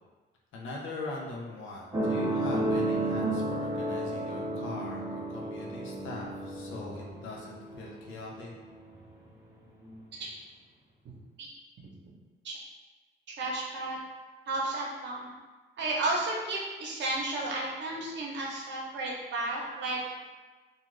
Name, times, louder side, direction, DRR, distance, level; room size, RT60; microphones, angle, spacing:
voice 1, 0.5-8.5, left 2 dB, 80° left, -2 dB, 0.7 m, -41 dB
sound 1, 1.9-9.0 9.8-9.9, right 1 dB, 15° right, 0.6 m, -32 dB
voice 2, 13.3-14.0 14.5-15.3 15.8-20.2, right 2 dB, 65° right, -3 dB, 0.8 m, -33 dB
2.4 x 2.4 x 3.1 m, 1.3 s
cardioid pair, 90°, 20 cm